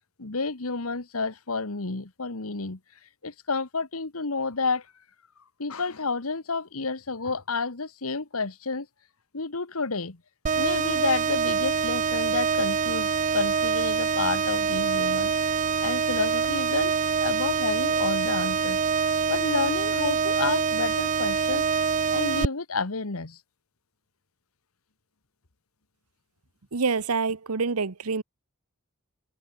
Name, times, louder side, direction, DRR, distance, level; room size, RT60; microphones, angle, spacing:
voice 1, 0.2-2.8 3.2-4.9 5.6-8.9 9.3-10.2 10.5-15.3 15.8-16.9 17.2-18.8 19.3-21.6 22.1-23.4, left 4 dB, 75° left, 1.6 m, -30 dB
sound 1, 10.5-22.5, right 6 dB, 35° right, 0.5 m, -25 dB
voice 2, 26.7-28.2, right 4 dB, 90° right, 1.0 m, -26 dB
head